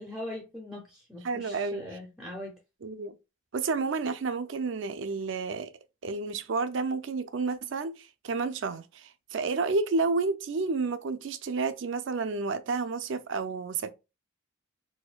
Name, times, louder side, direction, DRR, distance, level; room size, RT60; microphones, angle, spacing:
voice 1, 0.0-2.5, left 1 dB, 5° right, 0.6 m, -41 dB
voice 2, 1.2-1.8 2.8-3.2 3.5-5.7 6.0-13.9, right 4 dB, 65° right, 0.4 m, -30 dB
4.2 x 2.6 x 2.2 m
head